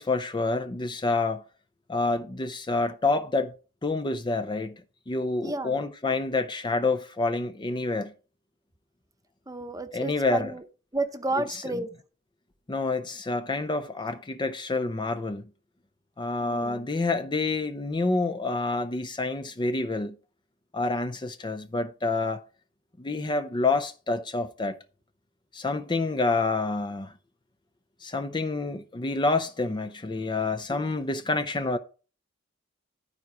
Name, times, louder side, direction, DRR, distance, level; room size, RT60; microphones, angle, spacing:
voice 1, 0.0-1.4 1.9-3.5 3.8-4.7 5.1-8.1 9.9-10.5 11.5-11.8 12.7-15.4 16.2-20.1 20.7-22.4 23.0-24.8 25.5-27.1 28.0-31.8, left 3 dB, 20° left, 0.5 m, -28 dB
voice 2, 5.4-5.8 9.5-10.6 10.9-11.9 16.4-16.9, right 2 dB, 15° right, 0.8 m, -31 dB
12.0 x 4.7 x 4.8 m
head